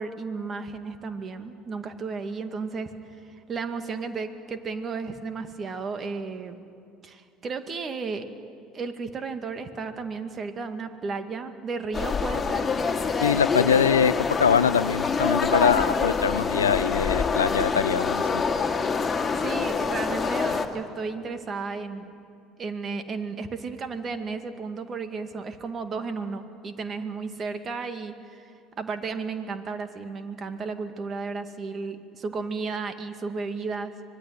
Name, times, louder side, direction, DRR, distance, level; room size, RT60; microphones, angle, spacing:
voice 1, 0.0-2.9 3.3-6.6 7.0-8.3 8.7-12.7 19.0-22.1 22.6-33.9, right 4 dB, 40° right, 8 dB, 2.3 m, -33 dB
sound 1, 11.9-20.7, left 5 dB, 25° left, 2.5 m, -26 dB
voice 2, 13.2-18.4, left 7 dB, 90° left, 18 dB, 0.5 m, -23 dB
25.0 x 21.0 x 9.5 m, 2.4 s
hypercardioid pair, 65°, 0 cm